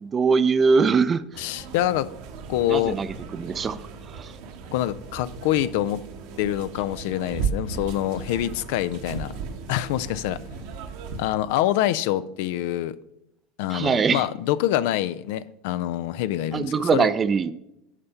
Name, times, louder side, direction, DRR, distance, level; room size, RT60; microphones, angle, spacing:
voice 1, 0.0-1.3 2.7-3.8 4.1-4.3 13.7-14.2 16.5-17.5, right 5 dB, 30° right, 0.5 m, -22 dB
sound 1, 1.3-11.3, right 5 dB, 60° right, 1.0 m, -36 dB
voice 2, 1.4-2.1 2.5-3.0 4.7-6.0 6.4-9.3 9.7-10.4 11.2-13.0 13.6-17.1, left 13 dB, 60° left, 0.3 m, -25 dB
11.0 x 4.3 x 5.6 m
figure-of-eight pair, 75°, 0 cm